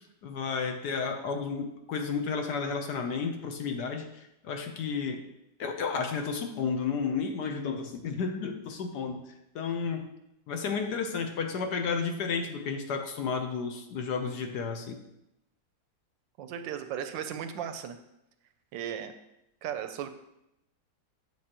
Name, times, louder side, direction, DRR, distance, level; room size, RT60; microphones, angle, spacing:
voice 1, 0.2-5.2 5.6-9.2 9.5-10.1 10.5-15.0, left 5 dB, 65° left, 5 dB, 1.2 m, -32 dB
voice 2, 16.4-18.0 18.7-19.1 19.6-20.1, right 9 dB, 75° right, 9 dB, 1.2 m, -36 dB
7.7 x 7.5 x 2.9 m, 0.85 s
omnidirectional pair, 2.1 m